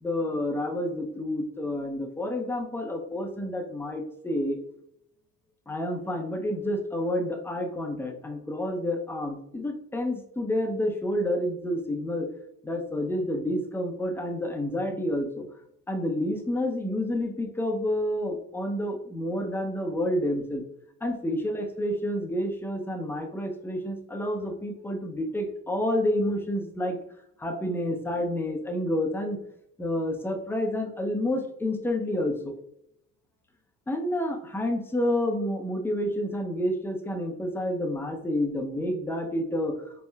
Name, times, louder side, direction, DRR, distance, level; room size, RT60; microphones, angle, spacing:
voice 1, 0.0-4.6 5.7-12.3 12.6-15.4 15.9-20.6 21.0-27.0 27.4-29.4 29.8-32.5 33.9-39.8, left 1 dB, 5° left, 4 dB, 0.5 m, -29 dB
4.2 x 3.2 x 2.2 m, 0.78 s
hypercardioid pair, 60°, 48 cm